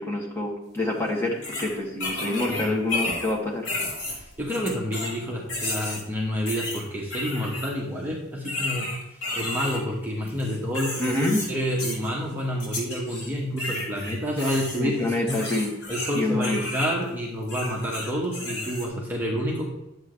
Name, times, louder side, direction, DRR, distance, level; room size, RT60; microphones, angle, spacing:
voice 1, 0.0-3.7 11.0-11.4 14.8-15.7 16.1-16.6, left 2 dB, 10° left, -3 dB, 1.8 m, -27 dB
sound 1, 0.8-0.9 1.4-3.3 3.6-5.2 5.5-6.0 6.5-7.7 8.4-9.8 10.3-11.5 11.8-12.1 12.6-13.3 13.6-16.9 17.4-18.9, left 2 dB, 65° left, 3.9 m, -32 dB
voice 2, 4.1-8.9 9.3-11.1 11.5-15.4 15.9-19.7, equal, 10° right, -4 dB, 1.3 m, -29 dB
11.0 x 7.9 x 3.2 m, 0.91 s
head